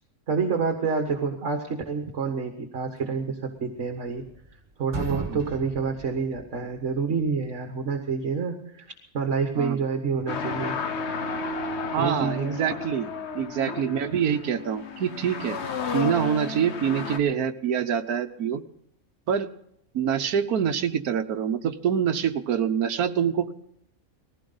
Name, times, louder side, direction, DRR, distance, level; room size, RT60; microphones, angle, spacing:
voice 1, 0.3-4.2 4.8-8.9 9.1-10.8 12.0-12.6, right 5 dB, 55° right, 4 dB, 1.9 m, -28 dB
sound 1, 3.7-4.5 4.8-7.0, right 2 dB, 35° right, 2.7 m, -36 dB
sound 2, 10.3-17.2, left 4 dB, 50° left, 1.2 m, -32 dB
voice 2, 11.9-15.6 15.9-18.6 19.3-19.5 19.9-23.5, right 8 dB, 80° right, 7 dB, 1.5 m, -26 dB
20.0 x 16.5 x 4.0 m, 0.73 s
omnidirectional pair, 1.6 m